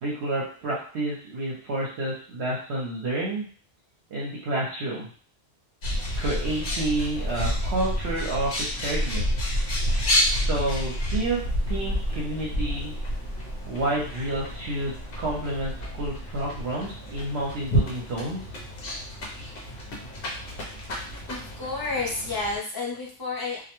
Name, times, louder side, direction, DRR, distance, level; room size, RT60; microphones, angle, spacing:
voice 1, 0.0-3.5 4.1-5.1 6.2-9.2 10.3-11.4 11.7-12.9 13.7-18.4, right 2 dB, 70° right, -4 dB, 0.9 m, -29 dB
Bird, 5.8-22.6, equal, 55° left, 0.8 m, -29 dB
voice 2, 21.3-23.6, left 3 dB, 25° left, -4 dB, 0.5 m, -30 dB
2.3 x 2.1 x 2.9 m, 0.43 s
omnidirectional pair, 1.2 m